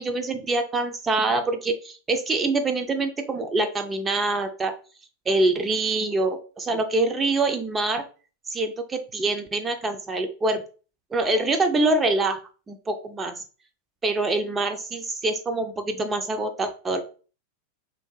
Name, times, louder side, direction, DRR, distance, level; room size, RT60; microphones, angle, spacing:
voice 1, 0.0-4.7 5.3-8.0 8.5-10.6 11.1-12.4 12.7-13.4 14.0-17.0, right 2 dB, 15° right, 6 dB, 0.4 m, -25 dB
2.7 x 2.5 x 3.7 m, 0.37 s
figure-of-eight pair, 90°, 0 cm